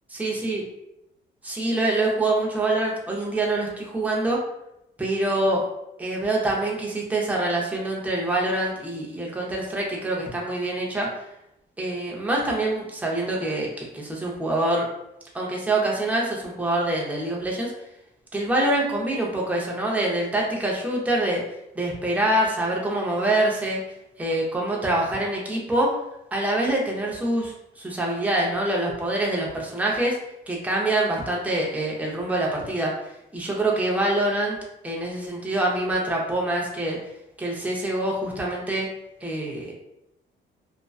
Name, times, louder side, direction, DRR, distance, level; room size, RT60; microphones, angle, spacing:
voice 1, 0.2-0.6 1.4-4.4 5.0-5.6 6.0-11.1 11.8-14.9 15.3-17.7 18.3-21.4 21.7-23.8 24.2-25.9 26.3-30.2 30.5-32.9 33.3-34.6 34.8-37.0 37.4-38.9 39.2-39.7, right 1 dB, 5° right, -3 dB, 0.6 m, -25 dB
2.5 x 2.2 x 2.3 m, 0.84 s
cardioid pair, 90°, 20 cm